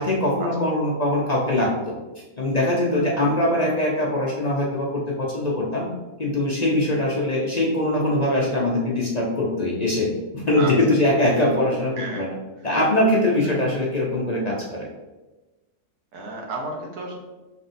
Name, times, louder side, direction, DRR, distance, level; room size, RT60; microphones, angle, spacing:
voice 1, 0.0-2.0 2.4-5.9 6.2-10.1 10.3-12.3 12.6-14.9, left 1 dB, 45° left, -3 dB, 0.5 m, -22 dB
voice 2, 16.1-17.2, right 3 dB, 90° right, 0 dB, 1.5 m, -33 dB
5.8 x 3.4 x 2.6 m, 1.1 s
omnidirectional pair, 1.6 m